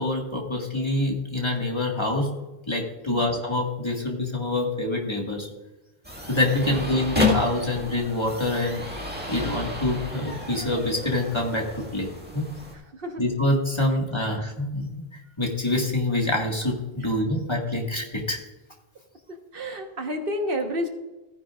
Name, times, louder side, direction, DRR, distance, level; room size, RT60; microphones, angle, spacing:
voice 1, 0.0-2.3 2.7-5.5 6.3-8.8 9.3-12.1 12.3-12.5 13.2-15.1 15.4-18.4, left 1 dB, 25° left, -1 dB, 1.8 m, -26 dB
voice 2, 3.1-3.4 6.5-6.9 12.7-13.2 17.0-17.1 19.5-20.9, equal, 60° right, 4 dB, 1.5 m, -31 dB
sound 1, 6.0-12.7, left 3 dB, 10° right, 1.9 m, -31 dB
15.5 x 9.9 x 2.5 m, 1.1 s
omnidirectional pair, 1.1 m